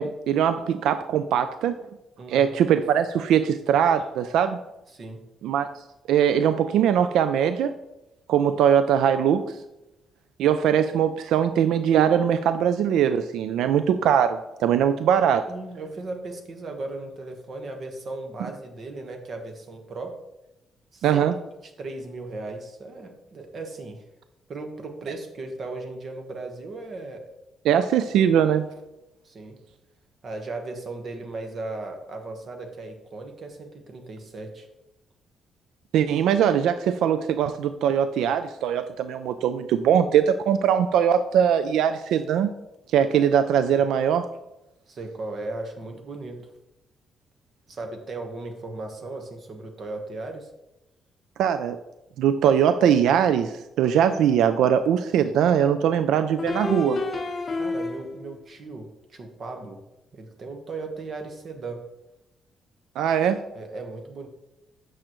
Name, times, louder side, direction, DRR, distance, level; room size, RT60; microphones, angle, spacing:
voice 1, 0.0-1.8 2.3-4.6 5.4-5.7 6.1-7.7 8.3-9.6 10.4-15.5 21.0-21.3 27.7-28.7 35.9-42.5 42.9-44.3 51.4-51.8 52.2-57.0 63.0-63.4, right 9 dB, 90° right, 10 dB, 0.3 m, -21 dB
voice 2, 2.2-2.5 4.9-5.2 15.5-20.1 20.9-21.2 21.8-24.0 24.5-27.2 28.2-28.4 29.2-29.6 30.2-34.7 44.9-46.5 47.7-50.5 57.5-59.8 60.1-61.8 63.5-64.3, right 2 dB, 45° right, 4 dB, 1.2 m, -36 dB
sound 1, 55.1-55.2 56.4-58.4, left 3 dB, 30° left, 0.7 m, -29 dB
8.7 x 6.2 x 3.0 m, 0.93 s
cardioid pair, 130°, 0 cm